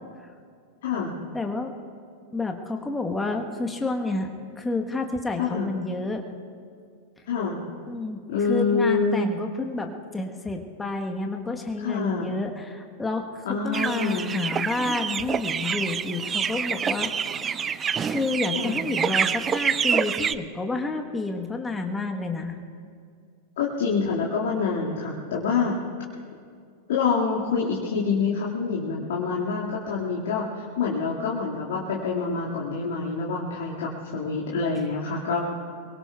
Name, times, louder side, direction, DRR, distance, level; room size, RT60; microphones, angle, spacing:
voice 1, 0.8-1.1 5.4-5.7 7.3-7.6 8.3-9.3 11.8-12.3 13.5-14.3 18.5-18.8 23.6-25.7 26.9-35.4, left 5 dB, 55° left, -4 dB, 2.0 m, -26 dB
voice 2, 1.3-1.7 2.3-4.3 4.6-6.2 7.9-8.2 8.5-17.1 18.1-22.5, left 2 dB, 10° left, 3 dB, 1.2 m, -29 dB
sound 1, 13.7-20.4, right 7 dB, 20° right, 0.4 m, -27 dB
24.0 x 22.5 x 2.3 m, 2.2 s
figure-of-eight pair, 90°, 0 cm